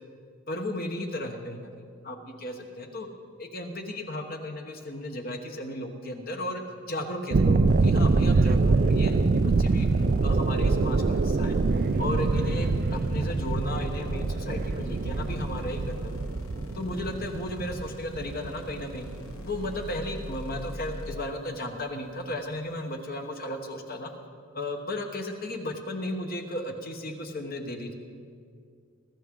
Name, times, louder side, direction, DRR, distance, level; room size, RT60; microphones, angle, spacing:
voice 1, 0.5-3.1 3.4-9.9 10.2-11.6 12.0-16.1 16.7-19.1 19.4-24.1 24.5-27.9, left 1 dB, 40° left, 4 dB, 1.2 m, -35 dB
sound 1, 7.3-19.9 20.2-20.5, right 3 dB, 45° right, 0.4 m, -25 dB
sound 2, 7.7-21.2, equal, 85° left, 1.2 m, -41 dB
21.0 x 13.0 x 3.8 m, 2.2 s
head